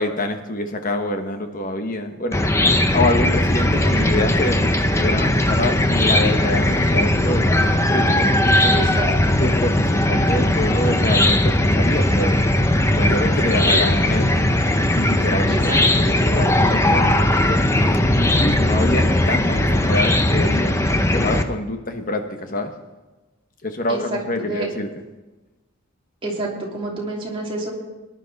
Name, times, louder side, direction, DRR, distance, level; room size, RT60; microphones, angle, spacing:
voice 1, 0.0-2.4 2.9-7.5 7.9-8.8 9.4-12.4 12.9-14.4 14.8-17.6 18.1-20.8 21.1-22.7 23.6-24.9, left 1 dB, 40° left, 6 dB, 1.2 m, -26 dB
Chicken rooster / Cricket, 2.3-21.4, left 1 dB, 15° left, 0.7 m, -18 dB
voice 2, 8.7-9.1 13.5-14.1 15.5-15.8 23.9-24.7 26.2-27.7, right 2 dB, 25° right, -3 dB, 2.9 m, -28 dB
18.5 x 10.5 x 4.1 m, 1.1 s
head